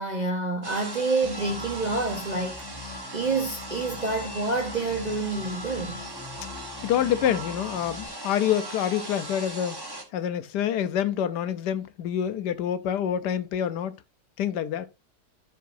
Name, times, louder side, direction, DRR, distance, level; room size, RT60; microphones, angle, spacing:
voice 1, 0.0-6.0, right 3 dB, 35° right, 0.7 m, -28 dB
sound 1, 0.6-10.0, right 1 dB, 15° right, 1.1 m, -38 dB
sound 2, 1.2-8.1, left 6 dB, 45° left, 2.1 m, -44 dB
voice 2, 6.8-9.8 10.1-13.9 14.4-14.9, left 10 dB, 80° left, 1.2 m, -27 dB
13.0 x 4.7 x 2.6 m
omnidirectional pair, 1.8 m